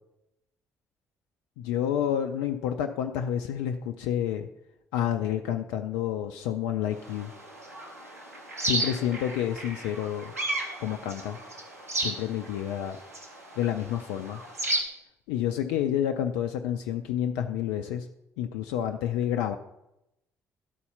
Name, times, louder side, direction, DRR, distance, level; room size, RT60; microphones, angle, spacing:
voice 1, 1.6-4.5 4.9-7.3 8.6-10.3 10.8-11.4 12.0-13.0 13.6-14.4 15.3-18.1 18.4-19.6, left 10 dB, 70° left, 6 dB, 0.4 m, -29 dB
sound 1, 7.0-14.8, right 2 dB, 90° right, 0.9 m, -34 dB
11.5 x 4.1 x 5.5 m, 0.88 s
figure-of-eight pair, 45°, 8 cm